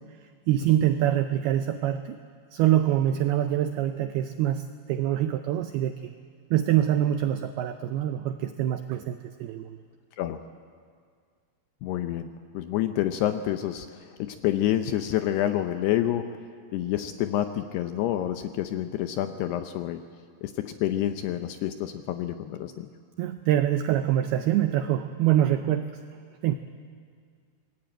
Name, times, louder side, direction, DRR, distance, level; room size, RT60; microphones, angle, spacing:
voice 1, 0.5-2.2 2.5-6.1 6.5-9.8 23.2-25.9 26.4-26.5, right 12 dB, 85° right, 8 dB, 2.2 m, -25 dB
voice 2, 11.8-16.4 16.7-20.0 20.4-22.9, left 12 dB, 80° left, 8 dB, 2.5 m, -28 dB
25.5 x 20.5 x 8.9 m, 2.1 s
omnidirectional pair, 5.4 m